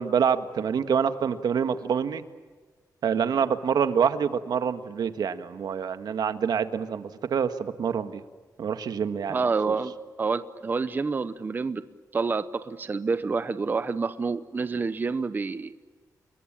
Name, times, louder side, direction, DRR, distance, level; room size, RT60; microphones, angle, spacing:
voice 1, 0.0-2.2 3.0-8.2 8.6-9.4, right 7 dB, 80° right, 10 dB, 1.6 m, -26 dB
voice 2, 9.3-11.8 12.1-15.7, right 4 dB, 30° right, 12 dB, 0.8 m, -28 dB
29.0 x 22.0 x 8.7 m, 1.4 s
wide cardioid pair, 180°, 7 cm